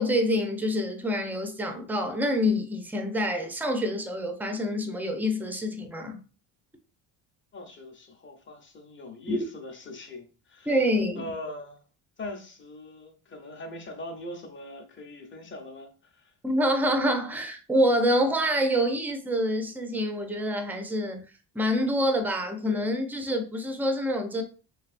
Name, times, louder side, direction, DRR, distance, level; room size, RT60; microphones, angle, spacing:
voice 1, 0.0-6.2 9.3-9.4 10.7-11.2 16.4-21.3 21.5-24.4, equal, 5° right, 0.3 m, -26 dB
voice 2, 7.5-10.8 11.2-11.8 12.2-16.3, left 1 dB, 25° left, 0.8 m, -41 dB
3.2 x 3.2 x 2.5 m
cardioid pair, 135°, 46 cm